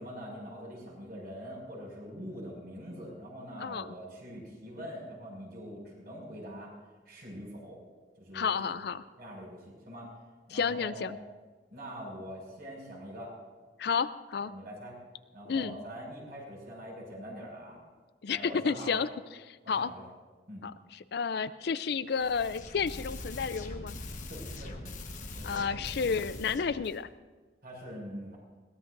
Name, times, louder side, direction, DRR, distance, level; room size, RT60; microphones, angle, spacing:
voice 1, 0.0-6.7 7.1-7.8 8.2-8.9 9.2-10.1 10.5-11.2 11.7-13.3 14.4-14.9 15.3-17.8 18.3-19.0 19.6-20.0 20.5-20.6 24.3-24.7 25.3-25.6 27.6-28.4, equal, 55° right, -2 dB, 6.1 m, -44 dB
voice 2, 8.3-9.0 10.5-11.2 13.8-14.5 15.5-15.8 18.2-19.1 19.4-19.9 20.6-20.7 21.1-24.0 25.4-27.1, left 6 dB, 60° left, 15 dB, 0.4 m, -31 dB
sound 1, 22.1-27.0, left 2 dB, 45° left, 1.3 m, -42 dB
22.0 x 18.0 x 2.6 m, 1.3 s
head